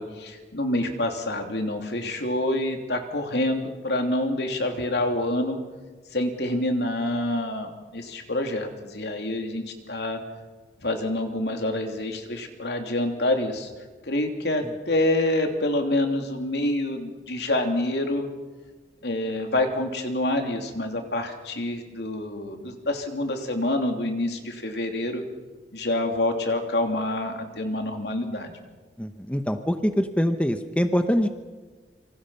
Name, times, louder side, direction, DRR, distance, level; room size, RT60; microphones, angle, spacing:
voice 1, 0.0-5.6 6.1-10.2 10.8-13.7 14.0-18.3 19.0-25.2 25.7-28.6, left 1 dB, 65° left, 4 dB, 3.2 m, -27 dB
voice 2, 29.0-31.3, equal, 5° left, 7 dB, 1.0 m, -24 dB
27.5 x 25.0 x 5.8 m, 1.3 s
head